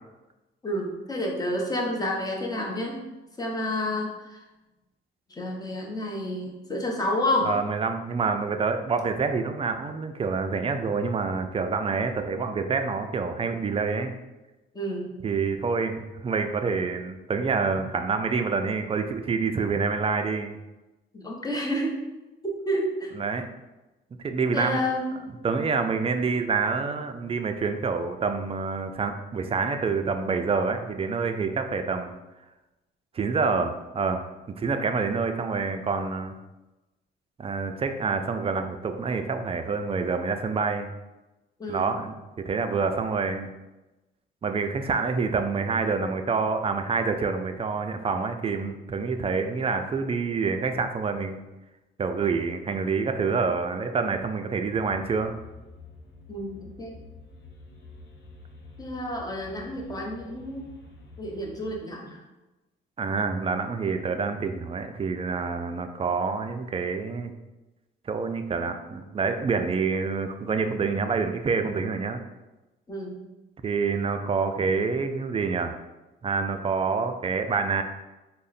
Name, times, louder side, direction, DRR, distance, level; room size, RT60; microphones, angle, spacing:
voice 1, 0.6-3.0 3.4-4.4 5.3-7.5 14.7-15.2 21.1-21.9 22.4-23.2 24.5-25.2 41.6-41.9 56.3-56.9 58.8-60.8 61.2-62.2 72.9-73.3, left 1 dB, 20° left, -1 dB, 0.8 m, -30 dB
voice 2, 7.4-14.1 15.2-20.6 23.1-23.5 24.2-24.8 25.4-32.1 33.1-34.3 34.6-36.3 37.4-40.9 41.7-42.1 42.4-43.5 44.4-51.4 52.0-55.3 63.0-67.3 68.1-72.2 73.6-75.8 76.2-77.8, right 4 dB, 30° right, 7 dB, 0.3 m, -27 dB
sound 1, 54.6-61.8, left 3 dB, 60° left, 0.7 m, -48 dB
3.6 x 2.1 x 4.0 m, 1.0 s
cardioid pair, 90°, 20 cm